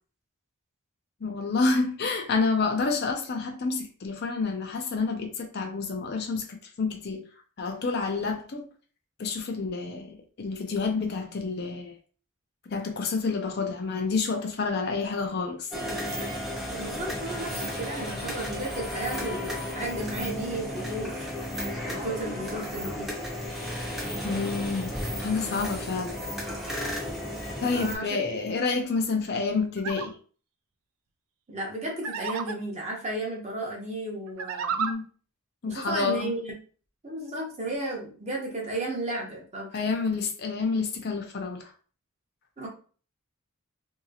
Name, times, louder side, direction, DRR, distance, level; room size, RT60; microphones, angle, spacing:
voice 1, 1.2-7.2 7.6-8.7 9.2-12.0 12.7-15.7 24.2-24.9 25.2-26.2 27.6-30.1 34.8-35.0 35.6-36.3 39.7-41.7, left 4 dB, 50° left, 0.5 m, -29 dB
sound 1, 15.7-27.9, left 1 dB, ahead, 0.7 m, -33 dB
voice 2, 16.7-23.1 27.7-28.6 31.5-34.8 35.7-36.6 37.0-39.7 42.6-42.7, right 1 dB, 30° right, 0.9 m, -34 dB
sound 2, 29.8-30.1 32.0-32.6 34.3-34.9, right 6 dB, 75° right, 0.3 m, -31 dB
2.8 x 2.8 x 2.7 m
head